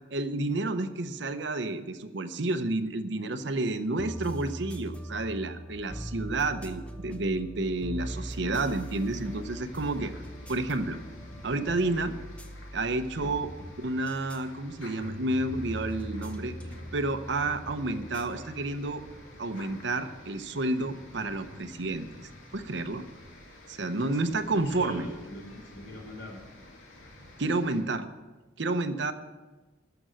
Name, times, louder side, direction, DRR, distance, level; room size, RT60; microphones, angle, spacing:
voice 1, 0.1-10.1 10.5-11.0 11.4-12.1 12.7-13.5 13.8-16.6 16.9-19.0 19.4-22.1 22.5-23.0 23.7-25.1 27.4-28.1 28.6-29.1, right 2 dB, 60° right, 10 dB, 0.8 m, -30 dB
sound 1, 4.0-19.2, equal, 5° left, 0.8 m, -41 dB
sound 2, 8.0-27.8, left 1 dB, 90° left, 2.7 m, -50 dB
voice 2, 24.5-26.4, left 1 dB, 60° left, 1 dB, 3.8 m, -42 dB
12.5 x 7.0 x 7.8 m, 1.2 s
head